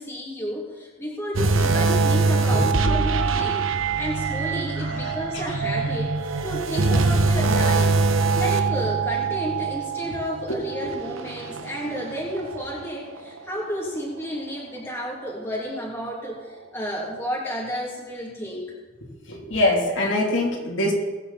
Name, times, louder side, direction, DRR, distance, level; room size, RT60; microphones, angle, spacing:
voice 1, 0.0-3.6 4.0-6.1 6.4-8.0 8.3-18.7, equal, 10° left, -4 dB, 2.8 m, -31 dB
sound 1, 1.3-12.8 13.2-13.4 14.0-14.1, right 4 dB, 75° right, 1.0 m, -23 dB
voice 2, 4.8-5.5 10.5-11.2 19.3-20.9, left 1 dB, 65° left, -2 dB, 3.3 m, -25 dB
22.0 x 8.8 x 4.3 m, 1.2 s
head